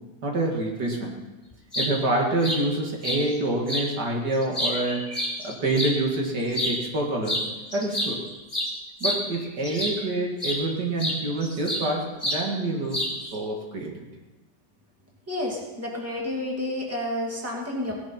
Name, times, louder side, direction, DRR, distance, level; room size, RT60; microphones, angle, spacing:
voice 1, 0.2-1.2 1.8-5.1 5.4-7.4 7.7-8.2 9.0-13.9, right 2 dB, 65° right, 0 dB, 2.5 m, -27 dB
sound 1, 1.5-1.9 2.4-2.6 3.0-3.2 3.7-3.9 4.3-5.9 6.5-6.8 7.2-7.5 7.7-10.0 10.4-10.6 11.0-11.9 12.2-12.4 12.9-13.3, equal, 15° left, 3.4 m, -28 dB
voice 2, 15.3-17.9, left 1 dB, 10° right, -2 dB, 2.4 m, -30 dB
17.5 x 11.0 x 4.3 m, 1.1 s
omnidirectional pair, 1.9 m